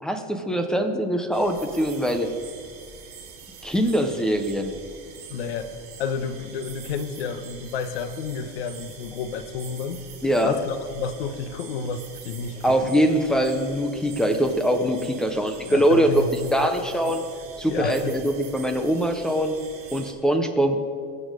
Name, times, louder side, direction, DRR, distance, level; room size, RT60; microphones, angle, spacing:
voice 1, 0.0-2.3 3.6-4.8 10.2-10.6 12.6-16.2 16.5-17.2 17.6-19.6 19.9-20.8, equal, ahead, 6 dB, 0.3 m, -22 dB
sound 1, 1.3-20.1, right 5 dB, 35° right, 2.2 m, -44 dB
voice 2, 5.3-10.0 10.4-12.9 15.7-16.7 17.1-17.2 17.7-18.1, left 5 dB, 80° left, 10 dB, 1.2 m, -31 dB
21.0 x 7.3 x 5.0 m, 2.2 s
supercardioid pair, 180°, 30 cm